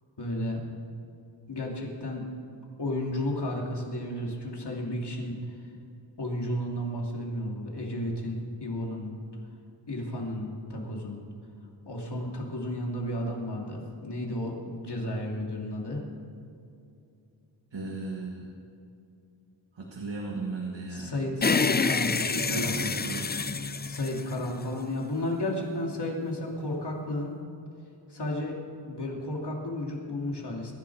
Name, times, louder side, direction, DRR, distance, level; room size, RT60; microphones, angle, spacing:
voice 1, 0.2-0.7 1.5-2.3 2.8-5.4 6.2-9.1 9.9-11.2 11.9-16.0 20.9-22.8 23.9-27.3 28.1-28.5 28.8-30.7, left 1 dB, 65° left, -1 dB, 2.9 m, -33 dB
voice 2, 17.7-18.5 19.8-21.1 22.4-23.3, right 3 dB, 80° right, -1 dB, 1.8 m, -35 dB
sound 1, 21.4-24.9, left 4 dB, 25° left, 0.4 m, -27 dB
23.0 x 11.0 x 4.8 m, 2.7 s
wide cardioid pair, 90°, 43 cm